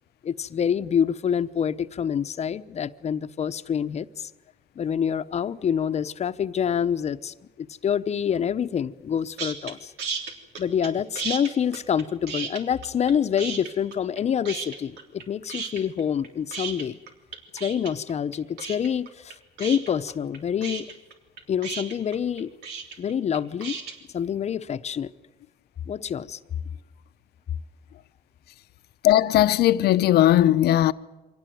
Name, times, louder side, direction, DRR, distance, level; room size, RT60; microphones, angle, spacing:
voice 1, 0.2-4.3 4.8-9.9 10.6-17.0 17.5-19.3 19.6-20.9 21.5-22.5 23.0-23.8 24.1-25.1 25.9-26.4, left 8 dB, 40° left, 0.9 m, -26 dB
sound 1, 9.4-9.7 10.0-10.9 11.2-13.1 13.4-14.2 14.5-15.2 15.5-23.9, right 5 dB, 85° right, 3.4 m, -34 dB
voice 2, 29.0-30.9, left 13 dB, 70° left, 0.8 m, -18 dB
25.0 x 18.0 x 9.3 m
cardioid pair, 110°, 17 cm